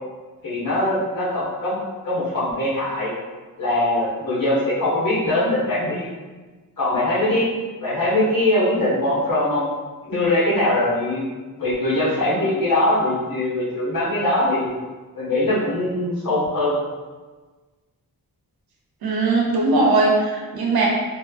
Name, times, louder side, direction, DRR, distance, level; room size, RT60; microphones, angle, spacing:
voice 1, 0.4-1.8 2.0-3.1 3.6-6.1 6.8-7.5 7.8-9.7 10.0-11.2 11.6-14.7 15.1-16.8, left 1 dB, 70° left, -9 dB, 1.1 m, -21 dB
voice 2, 19.0-20.9, right 3 dB, 85° right, -2 dB, 0.7 m, -19 dB
3.2 x 2.0 x 2.3 m, 1.3 s
wide cardioid pair, 150°, 36 cm